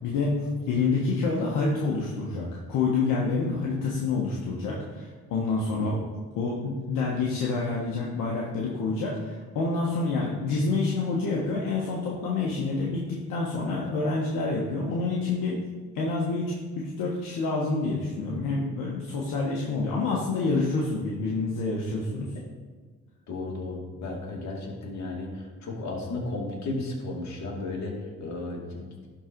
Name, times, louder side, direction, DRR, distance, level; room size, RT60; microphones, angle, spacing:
voice 1, 0.0-6.0 6.4-15.6 15.9-22.3, left 3 dB, 75° left, -3 dB, 1.3 m, -28 dB
voice 2, 23.3-29.1, left 2 dB, 60° left, -1 dB, 2.4 m, -34 dB
11.5 x 4.0 x 4.6 m, 1.5 s
supercardioid pair, 65°, 32 cm